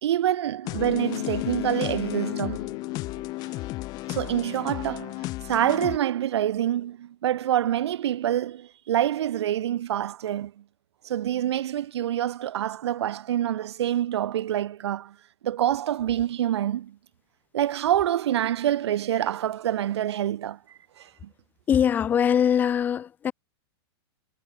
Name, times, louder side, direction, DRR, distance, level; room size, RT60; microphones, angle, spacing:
voice 1, 0.0-2.7 4.1-5.2 5.4-10.5 11.0-15.1 15.4-17.0 17.5-20.6 21.0-21.1, right 11 dB, 90° right, 1.0 m, -26 dB
sound 1, 0.6-6.0, left 19 dB, 30° left, 2.0 m, -33 dB
Boat Water vehicle, 0.8-3.9, left 13 dB, 70° left, 1.0 m, -36 dB
voice 2, 21.7-23.3, left 8 dB, 15° left, 0.5 m, -22 dB
supercardioid pair, 165°, 14 cm